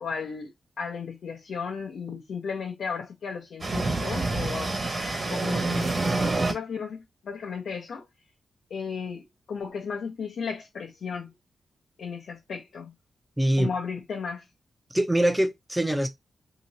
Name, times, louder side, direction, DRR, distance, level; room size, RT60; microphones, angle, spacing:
voice 1, 0.0-4.8 5.3-5.9 6.1-8.1 8.7-11.3 12.0-12.9 13.6-14.4, left 6 dB, 80° left, 0.8 m, -35 dB
sound 1, 3.6-6.5, right 2 dB, 40° right, 1.4 m, -27 dB
voice 2, 13.4-13.7 14.9-16.1, right 1 dB, 5° right, 0.6 m, -23 dB
3.0 x 2.9 x 2.6 m
wide cardioid pair, 105°, 0 cm